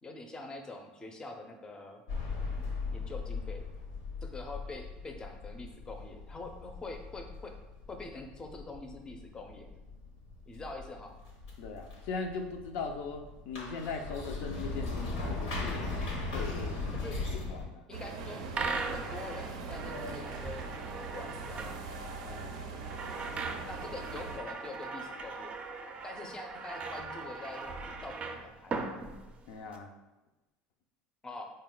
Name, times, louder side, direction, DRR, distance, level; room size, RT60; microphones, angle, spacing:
voice 1, 0.0-2.0 2.9-3.6 4.2-7.5 7.9-9.7 10.5-11.1 16.9-17.1 17.9-18.5 18.9-20.7 21.0-21.8 23.7-25.5 26.0-28.8 31.2-31.5, left 2 dB, 20° left, 4 dB, 0.5 m, -45 dB
sound 1, 2.1-17.7, left 3 dB, 90° left, 0.9 m, -39 dB
voice 2, 11.6-15.9 16.3-16.8 17.5-17.9 22.2-22.5 29.5-29.9, left 4 dB, 70° left, 3 dB, 0.4 m, -39 dB
sound 2, 17.9-24.4, right 4 dB, 90° right, 0.4 m, -41 dB
sound 3, 18.6-29.8, right 4 dB, 35° right, 0.4 m, -40 dB
4.0 x 2.2 x 3.8 m, 1.0 s
supercardioid pair, 95°, 4 cm